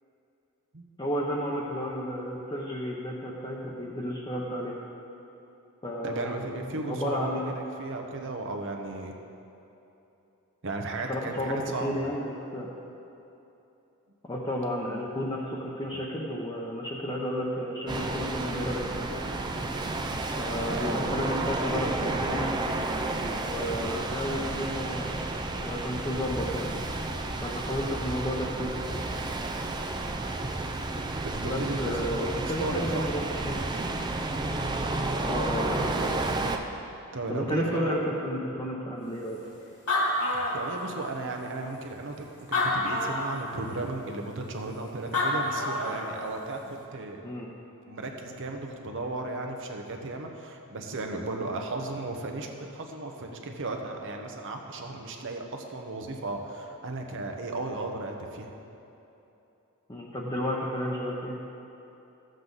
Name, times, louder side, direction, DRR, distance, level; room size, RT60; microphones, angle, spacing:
voice 1, 1.0-4.7 5.8-7.4 11.1-12.7 14.3-19.1 20.4-22.5 23.2-26.7 27.4-29.0 31.4-33.8 35.2-36.2 37.3-39.4 47.2-47.5 59.9-61.4, equal, 20° left, -5 dB, 0.8 m, -32 dB
voice 2, 6.0-9.1 10.6-12.1 20.5-21.2 31.2-33.0 37.1-38.0 40.3-47.2 47.9-58.5, right 2 dB, 60° right, 3 dB, 1.0 m, -35 dB
sound 1, 17.9-36.6, right 2 dB, 20° right, 0.4 m, -31 dB
Animal, 39.4-39.5 39.7-41.1 41.8-41.9 42.4-43.4 44.8-44.9 45.1-46.1, left 2 dB, 80° left, 2.5 m, -28 dB
13.5 x 7.8 x 3.9 m, 2.9 s
head